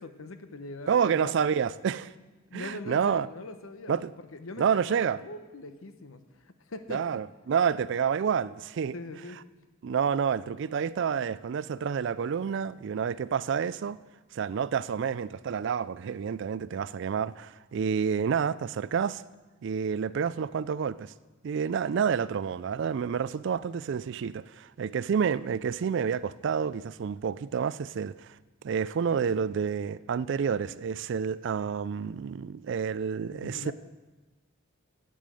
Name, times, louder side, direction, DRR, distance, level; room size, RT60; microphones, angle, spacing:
voice 1, 0.0-1.5 2.5-4.0 4.3-7.2 8.9-9.4 33.3-33.7, left 2 dB, 80° left, 0.9 m, -42 dB
voice 2, 0.9-2.1 2.5-3.3 3.9-4.1 4.6-5.2 6.9-8.9 9.8-14.0 14.3-19.2 19.6-21.1 21.4-28.4 28.6-33.7, right 7 dB, 60° right, 0.3 m, -29 dB
9.3 x 8.5 x 7.6 m
head